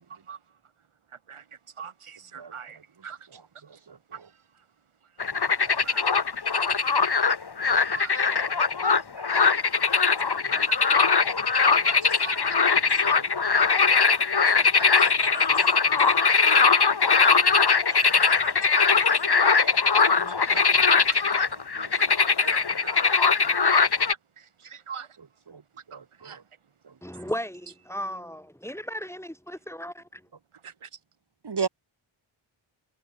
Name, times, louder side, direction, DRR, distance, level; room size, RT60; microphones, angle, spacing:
voice 1, 1.8-2.8 3.0-3.2 5.5-6.1 7.9-8.2 9.3-9.4 10.6-10.8 11.5-12.4 12.9-13.0 14.6-15.7 16.0-16.6 18.0-20.2 20.5-20.8 21.1-21.3 22.0-22.1 22.4-23.0 24.4-25.1 25.9-26.0 26.2-26.4 30.6-30.9, right 7 dB, 85° right, 2.5 m, -42 dB
voice 2, 3.9-4.3 5.6-5.7 8.3-8.5 12.7-13.3 13.9-14.0 16.3-16.4 16.8-16.9 20.2-20.6 21.8-21.9 25.5-25.6 25.9-26.4 31.4-31.7, right 5 dB, 55° right, 2.0 m, -36 dB
sound 1, 5.2-24.1, left 5 dB, 50° left, 2.8 m, -21 dB
voice 3, 27.0-30.2, equal, 5° left, 2.9 m, -35 dB
wide cardioid pair, 115°, 49 cm